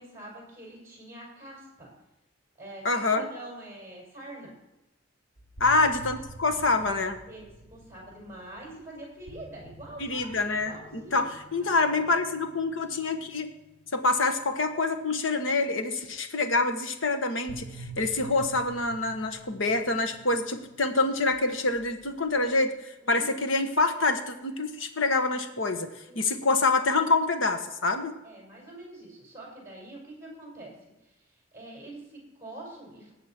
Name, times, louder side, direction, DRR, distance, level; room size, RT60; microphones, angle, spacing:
voice 1, 0.0-1.9 2.6-4.5 5.6-6.0 7.3-10.4 10.6-11.3 11.6-11.8 23.0-23.3 26.1-26.4 28.2-33.1, right 1 dB, 15° right, -3 dB, 5.7 m, -45 dB
voice 2, 2.8-3.3 5.6-7.2 10.0-13.5 13.9-17.6 18.0-22.7 23.1-25.9 26.1-28.1, left 3 dB, 80° left, 7 dB, 1.4 m, -26 dB
sound 1, 5.4-15.5 17.5-22.5, right 2 dB, 60° left, 2.9 m, -48 dB
19.0 x 7.8 x 4.4 m, 0.97 s
head